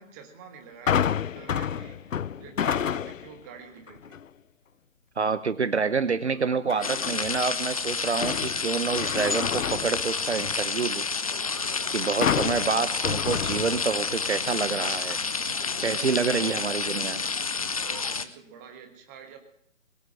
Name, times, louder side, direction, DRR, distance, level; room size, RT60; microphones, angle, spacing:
voice 1, 0.0-4.2 6.2-6.4 12.7-13.1 17.7-19.4, right 7 dB, 10° right, 4 dB, 1.3 m, -47 dB
sound 1, 0.9-3.4 3.9-4.3 6.7-7.4 7.8-10.7 12.2-14.2 14.5-14.6, left 8 dB, 75° left, 0.5 m, -30 dB
voice 2, 5.2-11.1 11.9-15.2 15.8-17.2, right 5 dB, 55° right, 14 dB, 0.9 m, -27 dB
sound 2, 6.8-18.2, left 4 dB, 25° left, 0.7 m, -29 dB
21.5 x 9.1 x 6.3 m, 0.75 s
figure-of-eight pair, 145°, 39 cm